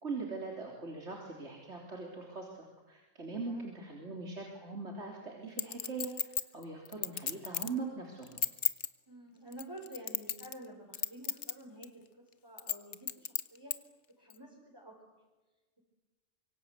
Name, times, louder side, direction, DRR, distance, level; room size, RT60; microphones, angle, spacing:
voice 1, 0.0-6.1 6.5-8.4, right 4 dB, 75° right, 0 dB, 3.8 m, -41 dB
Chink clink, 5.6-7.8 8.2-8.9 9.5-10.7 10.9-11.5 11.8-11.9 12.6-13.8 14.3-14.4, left 8 dB, 85° left, 1.4 m, -34 dB
voice 2, 9.1-11.9 12.4-13.7 14.2-14.9, right 1 dB, 20° right, -3 dB, 4.8 m, -49 dB
25.5 x 23.5 x 8.2 m, 1.2 s
omnidirectional pair, 1.2 m